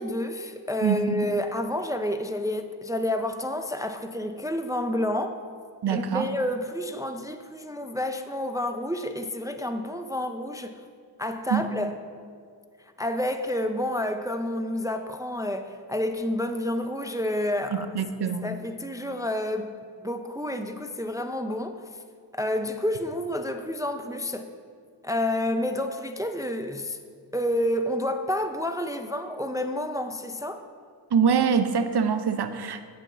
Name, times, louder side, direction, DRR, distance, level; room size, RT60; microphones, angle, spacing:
voice 1, 0.0-5.4 5.9-10.8 11.2-11.9 13.0-18.0 18.2-19.7 20.0-21.8 22.3-24.5 25.0-27.0 27.3-30.6, left 1 dB, 10° right, 7 dB, 0.4 m, -29 dB
voice 2, 0.8-1.3 5.8-6.3 11.5-11.7 17.7-18.5 31.1-32.9, right 6 dB, 65° right, 9 dB, 0.7 m, -24 dB
8.2 x 4.8 x 7.4 m, 2.2 s
cardioid pair, 60°, 44 cm